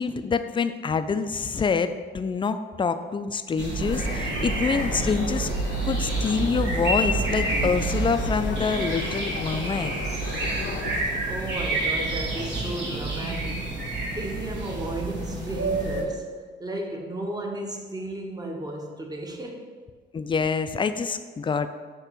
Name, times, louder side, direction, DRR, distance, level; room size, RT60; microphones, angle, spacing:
voice 1, 0.0-5.5 5.8-9.9 20.1-21.7, left 5 dB, 25° left, 0.4 m, -26 dB
sound 1, 3.6-16.0, right 2 dB, 65° right, 1.6 m, -28 dB
sound 2, 3.8-11.0, left 6 dB, 75° left, 0.7 m, -36 dB
voice 2, 11.0-16.3 16.6-19.7, right 1 dB, 20° right, 1.0 m, -34 dB
6.7 x 3.0 x 5.8 m
cardioid pair, 90°, 20 cm